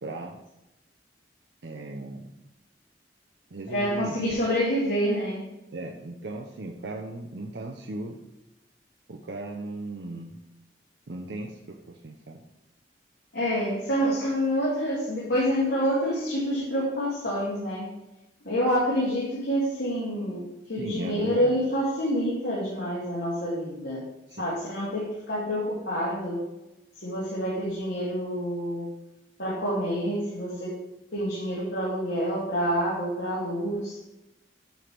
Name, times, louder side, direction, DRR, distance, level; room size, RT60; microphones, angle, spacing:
voice 1, 0.0-0.4 1.6-2.3 3.5-4.2 5.7-8.2 9.1-10.4 11.1-12.4 20.8-21.5 24.3-24.4, right 2 dB, 75° right, 1 dB, 0.7 m, -37 dB
voice 2, 3.7-5.4 13.3-17.9 18.4-20.4 20.7-24.0 24.4-26.4 26.9-28.9 29.4-30.8 31.1-34.0, equal, 80° left, -7 dB, 2.4 m, -27 dB
9.1 x 3.4 x 6.0 m, 0.96 s
head